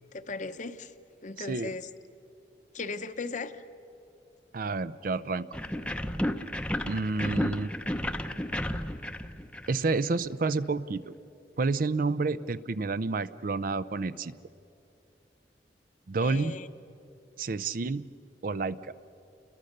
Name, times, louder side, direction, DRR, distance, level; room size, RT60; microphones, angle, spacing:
voice 1, 0.1-0.9 1.2-1.9 2.7-3.6 7.2-7.3 16.2-16.7, left 3 dB, 45° left, 11 dB, 0.8 m, -37 dB
voice 2, 1.4-1.7 4.5-5.6 6.9-7.7 9.7-11.1 11.6-14.3 16.1-16.6 17.4-18.0 18.4-18.8, right 3 dB, 50° right, 15 dB, 0.5 m, -29 dB
sound 1, 5.5-10.2, left 1 dB, 5° left, 0.7 m, -32 dB
29.5 x 21.5 x 6.6 m, 2.7 s
head